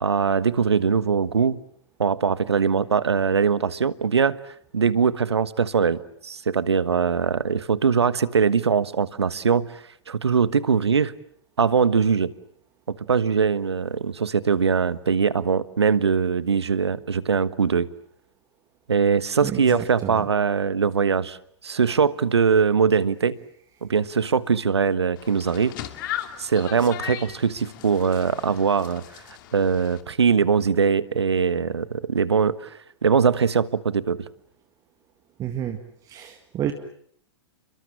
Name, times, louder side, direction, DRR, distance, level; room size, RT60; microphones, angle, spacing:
voice 1, 0.0-1.6 2.0-4.4 4.7-9.7 10.1-11.1 11.6-12.3 12.9-17.9 18.9-21.4 21.6-23.4 23.8-25.7 26.4-29.0 29.5-32.7 33.0-34.2, right 6 dB, 70° right, 17 dB, 1.3 m, -21 dB
voice 2, 19.4-20.3 35.4-35.8 36.1-36.7, right 10 dB, 25° right, 6 dB, 1.9 m, -30 dB
sound 1, 25.2-30.0, left 12 dB, 45° left, 2.7 m, -37 dB
30.0 x 23.0 x 7.4 m, 0.65 s
figure-of-eight pair, 100°, 14 cm